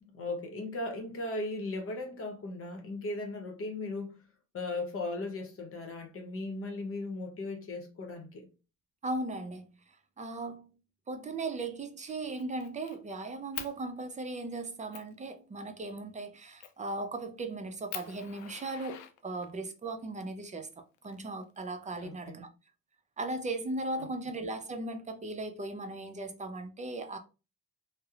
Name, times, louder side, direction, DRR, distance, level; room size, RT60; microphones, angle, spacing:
voice 1, 0.0-4.1 4.5-8.5 21.9-22.4 24.0-24.1, left 2 dB, 45° left, 0.9 m, -37 dB
voice 2, 9.0-9.7 10.2-10.7 11.1-22.5 23.2-27.2, right 2 dB, 25° right, 0.5 m, -37 dB
Fire, 11.4-11.7 12.1-13.0 13.5-13.7 14.3-14.4 14.9-15.1 16.6-16.9 17.4-17.5 17.9-19.7 20.7-21.7, left 10 dB, 80° left, 0.4 m, -44 dB
2.7 x 2.0 x 2.4 m
cardioid pair, 90°, 30 cm